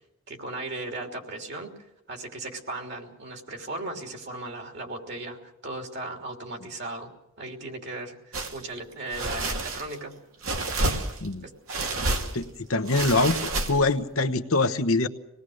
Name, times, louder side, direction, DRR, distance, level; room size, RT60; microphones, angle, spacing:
voice 1, 0.3-1.7 2.1-7.1 7.4-10.1 11.4-11.5, right 2 dB, 50° right, 3 dB, 3.1 m, -37 dB
sound 1, 8.3-8.6 9.1-10.0 10.4-11.3 11.7-12.4 12.9-14.0, right 2 dB, 70° right, 2.6 m, -29 dB
voice 2, 12.3-15.1, left 3 dB, 70° left, 9 dB, 1.1 m, -24 dB
26.0 x 19.0 x 6.5 m, 0.87 s
head